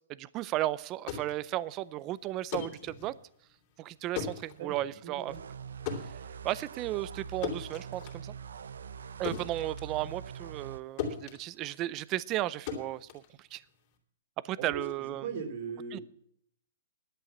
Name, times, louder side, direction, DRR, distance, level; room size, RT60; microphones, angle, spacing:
voice 1, 0.2-3.2 3.8-5.3 6.0-6.1 6.4-8.3 9.2-13.1 13.4-13.6 14.4-15.2 15.9-16.0, right 15 dB, 25° right, 20 dB, 0.5 m, -34 dB
sound 1, 0.8-10.7 11.0-14.0, left 7 dB, 40° left, 3.1 m, -40 dB
voice 2, 4.6-5.4 14.6-16.0, right 5 dB, 55° right, 5 dB, 2.7 m, -39 dB
sound 2, 5.3-10.8, right 7 dB, 85° right, 0.5 m, -43 dB
11.0 x 8.5 x 7.3 m, 0.68 s
hypercardioid pair, 150°, 0 cm